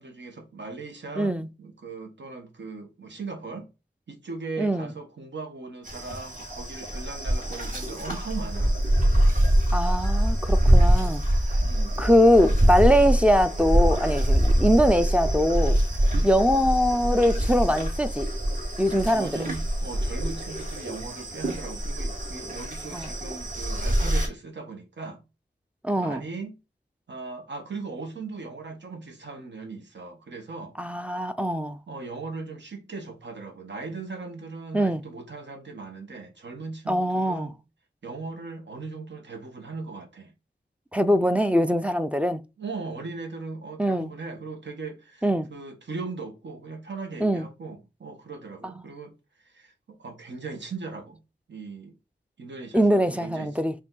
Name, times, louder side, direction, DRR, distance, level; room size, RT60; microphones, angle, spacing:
voice 1, 0.0-1.3 1.6-3.7 4.1-8.8 11.6-12.0 16.1-16.4 19.1-25.2 26.0-26.6 27.1-30.7 31.9-37.6 38.0-40.3 42.6-49.1 49.4-51.2 51.5-51.9 52.4-53.5, right 4 dB, 75° right, 1.2 m, -38 dB
voice 2, 1.2-1.5 4.6-4.9 9.7-11.2 12.0-15.8 16.2-18.3 18.8-19.4 22.9-23.1 25.8-26.2 30.8-31.8 34.7-35.0 36.9-37.5 40.9-42.4 43.8-44.1 45.2-45.5 47.2-47.5 48.6-48.7 52.7-53.7, equal, 5° right, 0.4 m, -22 dB
sound 1, 5.8-24.3, right 1 dB, 45° right, 2.2 m, -24 dB
4.8 x 2.7 x 3.9 m
wide cardioid pair, 65°, 19 cm